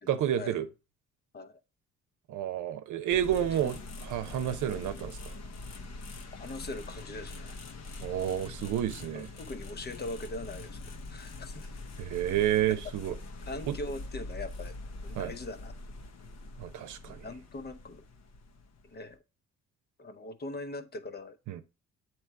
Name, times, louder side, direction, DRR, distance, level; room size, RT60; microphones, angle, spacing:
voice 1, 0.1-0.7 2.3-5.3 8.0-9.3 12.0-13.2 13.7-13.8 15.1-15.3 16.6-17.3 21.5-21.6, right 11 dB, 75° right, 0.8 m, -30 dB
sound 1, 3.1-19.1, left 2 dB, 60° left, 0.9 m, -43 dB
voice 2, 6.4-7.6 9.1-10.8 11.1-11.7 13.5-14.8 15.0-15.7 17.1-18.0 18.8-19.2 20.0-21.4, left 2 dB, 35° left, 0.8 m, -41 dB
7.6 x 3.1 x 4.6 m
cardioid pair, 90°, 30 cm